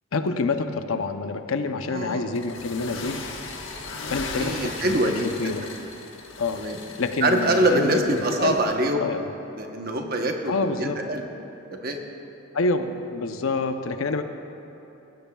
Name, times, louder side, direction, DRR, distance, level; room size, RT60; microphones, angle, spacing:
voice 1, 0.1-3.2 4.1-5.7 6.4-6.6 7.0-8.6 9.0-9.3 10.5-11.0 12.5-14.2, left 3 dB, 80° left, 8 dB, 0.7 m, -27 dB
voice 2, 1.9-2.2 4.4-5.3 6.6-6.8 7.2-9.0 9.6-11.3 11.7-12.1, right 1 dB, 45° right, 3 dB, 1.0 m, -24 dB
sound 1, 2.3-8.6, left 3 dB, 65° left, 1.3 m, -38 dB
20.5 x 15.5 x 2.3 m, 2.9 s
head